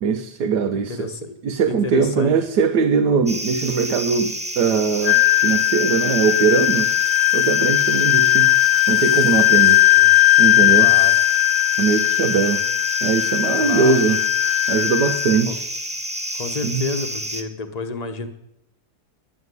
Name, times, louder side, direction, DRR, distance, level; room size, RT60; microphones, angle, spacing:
voice 1, 0.0-1.1 1.4-6.9 7.3-8.5 8.9-9.8 10.4-10.9 11.8-12.6 13.0-14.2 14.7-15.6 16.6-16.9, right 5 dB, 80° right, 5 dB, 1.4 m, -21 dB
voice 2, 0.7-1.4 1.7-2.4 9.6-10.1 10.8-11.1 13.6-14.0 15.5-15.6 16.3-18.3, left 3 dB, 30° left, 8 dB, 1.0 m, -30 dB
sound 1, 3.3-17.4, right 1 dB, 5° right, 0.5 m, -29 dB
Wind instrument woodwind instrument, 5.0-15.4, left 21 dB, 65° left, 0.9 m, -18 dB
11.0 x 8.7 x 9.5 m, 0.79 s
omnidirectional pair, 1.7 m